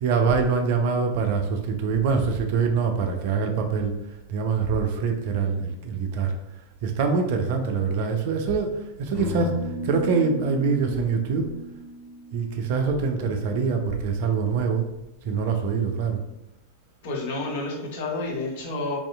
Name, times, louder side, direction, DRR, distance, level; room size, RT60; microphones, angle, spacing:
voice 1, 0.0-3.9 4.3-6.3 6.8-8.7 9.0-9.6 9.8-11.5 12.3-14.9 15.2-16.2, right 5 dB, 50° right, 4 dB, 0.3 m, -24 dB
sound 1, 9.1-13.3, left 2 dB, 20° right, 1.0 m, -34 dB
voice 2, 17.0-19.0, left 2 dB, 50° left, 0 dB, 0.6 m, -30 dB
2.6 x 2.3 x 2.2 m, 0.90 s
figure-of-eight pair, 90°, 0 cm